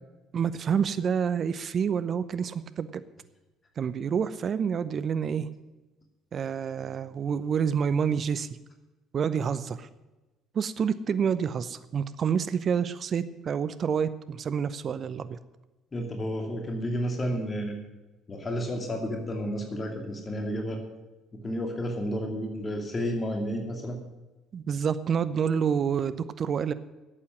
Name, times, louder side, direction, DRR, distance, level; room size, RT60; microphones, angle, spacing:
voice 1, 0.3-3.0 3.8-5.5 6.3-8.5 9.1-9.9 10.5-15.4 24.5-26.7, right 7 dB, 50° right, 14 dB, 0.7 m, -28 dB
voice 2, 15.9-17.8 18.3-20.8 21.4-24.0, equal, 30° left, 2 dB, 2.7 m, -31 dB
12.0 x 8.5 x 7.9 m, 1.1 s
hypercardioid pair, 55°, 0 cm